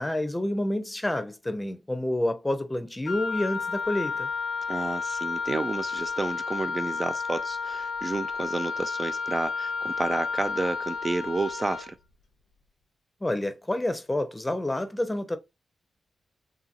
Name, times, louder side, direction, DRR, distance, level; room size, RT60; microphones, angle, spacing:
voice 1, 0.0-4.3 13.2-15.4, left 1 dB, 20° left, 0.6 m, -28 dB
Wind instrument woodwind instrument, 3.1-11.9, left 5 dB, 85° left, 0.6 m, -31 dB
voice 2, 4.7-12.0, right 3 dB, 35° right, 0.3 m, -30 dB
2.8 x 2.7 x 2.4 m
supercardioid pair, 50°, 0 cm